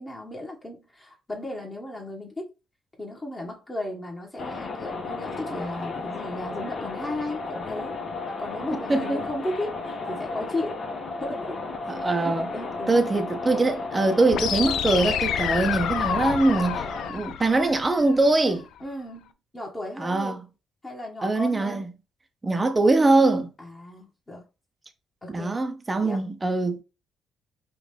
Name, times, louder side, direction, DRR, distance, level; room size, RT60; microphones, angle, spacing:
voice 1, 0.0-2.5 3.0-8.0 8.4-10.8 11.2-11.6 11.8-11.9 12.2-13.1 16.2-16.4 18.8-20.4 20.8-21.9 23.6-24.4 25.2-25.5 26.0-26.3, left 1 dB, 20° left, 1.4 m, -35 dB
sound 1, 4.4-17.1, left 3 dB, 50° left, 1.3 m, -34 dB
voice 2, 8.9-9.2 11.9-12.5 12.9-18.7 20.0-20.4 21.2-21.9 22.4-23.5 25.3-26.8, right 2 dB, 20° right, 0.7 m, -22 dB
sound 2, 14.3-18.3, left 9 dB, 80° left, 0.4 m, -29 dB
5.0 x 2.5 x 3.4 m
cardioid pair, 90°, 0 cm